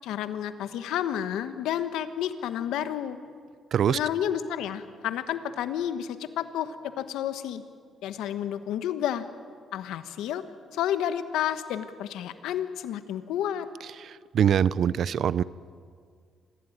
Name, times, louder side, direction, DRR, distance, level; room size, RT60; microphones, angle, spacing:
voice 1, 0.0-3.2 3.9-7.6 8.0-9.2 9.7-10.4 10.7-13.7, left 10 dB, 90° left, 11 dB, 1.3 m, -30 dB
voice 2, 14.0-15.4, right 9 dB, 65° right, 19 dB, 0.6 m, -24 dB
25.0 x 15.5 x 9.4 m, 2.1 s
cardioid pair, 90°, 0 cm